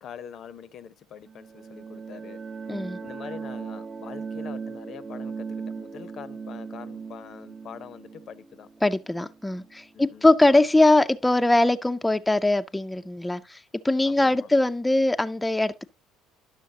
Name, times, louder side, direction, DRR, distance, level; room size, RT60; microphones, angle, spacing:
voice 1, 0.0-2.4 3.0-8.7 9.9-10.3 14.0-14.5, left 8 dB, 55° left, 0.7 m, -44 dB
sound 1, 1.3-9.8, right 5 dB, 35° right, 0.6 m, -38 dB
voice 2, 2.7-3.0 8.8-15.9, left 2 dB, 10° left, 0.4 m, -22 dB
11.0 x 6.3 x 2.8 m
hypercardioid pair, 60°, 0 cm